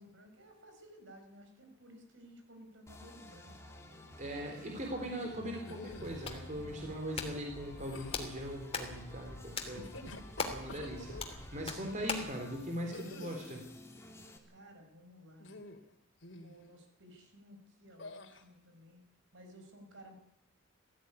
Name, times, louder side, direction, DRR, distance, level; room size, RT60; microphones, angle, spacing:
voice 1, 0.0-5.1 6.5-7.0 14.5-15.6 16.4-19.0 19.3-20.1, equal, 65° right, 5 dB, 5.6 m, -56 dB
sound 1, 2.9-14.4, left 1 dB, 15° left, 3.0 m, -53 dB
voice 2, 4.2-9.9 10.4-13.7, equal, 40° right, 2 dB, 3.6 m, -40 dB
sound 2, 5.6-6.3 7.7-8.4 9.6-11.4 12.9-13.6 15.4-15.9 16.2-16.6 18.0-18.4, left 2 dB, 65° left, 2.9 m, -49 dB
Hands, 5.9-12.4, left 4 dB, 30° left, 3.1 m, -42 dB
19.5 x 15.0 x 9.8 m, 0.79 s
head